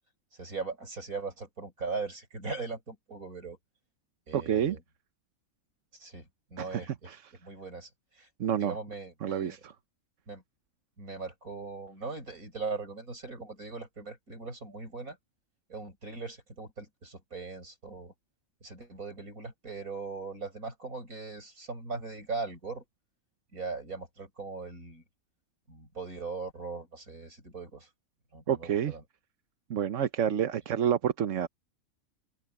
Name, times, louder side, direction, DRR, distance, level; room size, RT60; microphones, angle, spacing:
voice 1, 0.4-3.6 4.3-4.8 6.0-7.1 7.4-7.9 8.2-8.3 8.6-9.6 10.3-10.4 11.0-15.2 15.7-18.1 18.6-22.9 23.5-25.0 25.7-27.9 28.3-29.0, right 4 dB, 85° right, 8.1 m, -39 dB
voice 2, 4.3-4.8 6.6-7.3 8.4-8.8 9.2-9.7 28.5-29.0 29.7-31.5, right 9 dB, 65° right, 1.2 m, -29 dB
open air
omnidirectional pair, 1.4 m